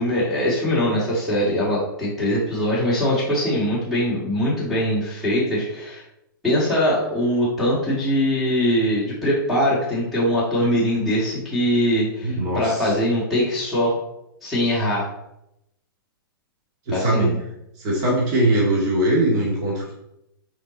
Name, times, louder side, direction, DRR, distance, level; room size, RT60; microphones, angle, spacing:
voice 1, 0.0-6.0 6.4-13.9 14.4-15.1 16.9-17.4, equal, ahead, -9 dB, 2.0 m, -22 dB
voice 2, 12.2-12.9 16.9-17.3 17.8-19.9, right 1 dB, 30° right, -5 dB, 2.2 m, -21 dB
5.8 x 4.7 x 4.1 m, 0.83 s
hypercardioid pair, 140°, 12 cm